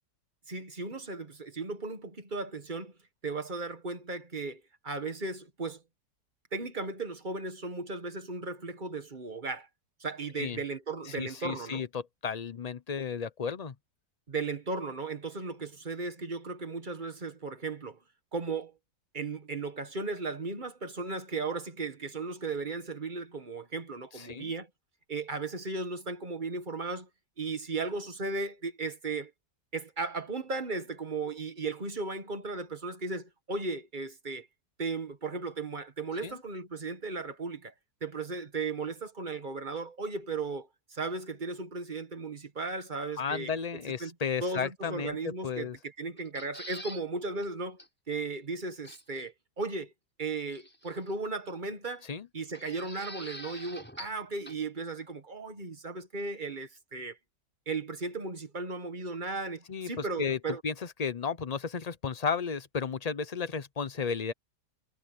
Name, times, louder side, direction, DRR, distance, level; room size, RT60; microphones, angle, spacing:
voice 1, 0.5-2.9 3.2-5.8 6.5-9.7 10.0-11.8 14.3-18.0 18.3-18.7 19.1-24.7 25.1-27.1 27.4-29.3 29.7-34.5 34.8-37.7 38.0-43.5 44.0-44.1 44.4-47.8 48.1-49.9 50.2-52.0 52.3-57.2 57.6-60.6, right 3 dB, 30° right, 1.7 m, -36 dB
voice 2, 11.1-13.7 24.2-24.5 36.2-36.4 43.2-45.8 52.1-52.3 59.7-60.4 60.6-60.7 61.0-64.3, left 6 dB, 45° left, 0.5 m, -33 dB
sound 1, 46.2-47.0 47.4-47.5 47.8-47.9 48.8-49.2 50.5-51.1 52.5-54.2 54.5-54.6, left 1 dB, 5° left, 6.0 m, -45 dB
omnidirectional pair, 1.8 m